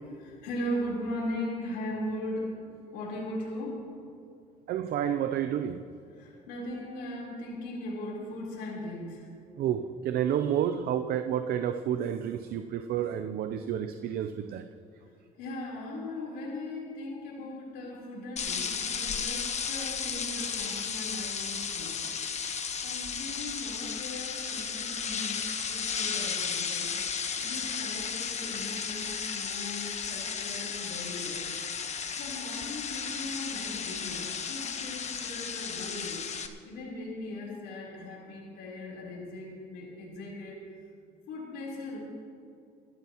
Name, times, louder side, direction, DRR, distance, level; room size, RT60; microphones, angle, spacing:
voice 1, 0.2-2.6 2.9-3.9 6.1-9.3 15.4-22.1 22.8-25.4 25.7-26.9 27.4-31.5 32.2-36.2 36.6-40.6 41.3-42.0, left 1 dB, 85° left, -3 dB, 4.0 m, -38 dB
voice 2, 4.7-5.9 9.6-14.6, right 9 dB, 65° right, 8 dB, 0.6 m, -30 dB
sound 1, 18.4-36.5, left 6 dB, 40° left, 1.2 m, -34 dB
26.5 x 13.0 x 3.1 m, 2.6 s
cardioid pair, 110°, 17 cm